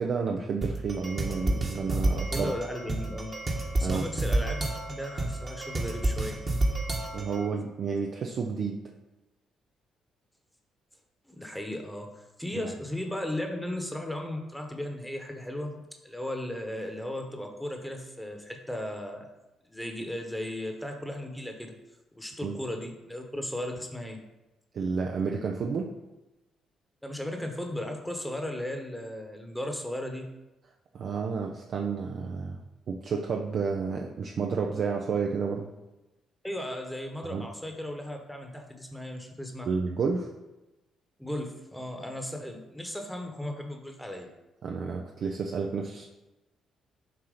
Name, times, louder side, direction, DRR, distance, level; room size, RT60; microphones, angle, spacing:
voice 1, 0.0-2.5 3.8-4.1 7.1-8.8 12.5-12.6 22.4-22.6 24.7-25.9 30.9-32.6 32.9-35.7 37.3-37.5 39.7-40.3 44.6-46.0, right 5 dB, 60° right, 1 dB, 0.6 m, -30 dB
sound 1, 0.6-7.5, right 1 dB, 35° right, 1.4 m, -30 dB
voice 2, 2.3-3.3 3.7-6.4 11.3-19.3 19.7-21.7 22.1-24.2 27.0-30.2 36.4-39.7 41.2-44.3, left 1 dB, 5° left, 3 dB, 1.1 m, -36 dB
7.6 x 2.9 x 5.0 m, 1.0 s
supercardioid pair, 55°, 0 cm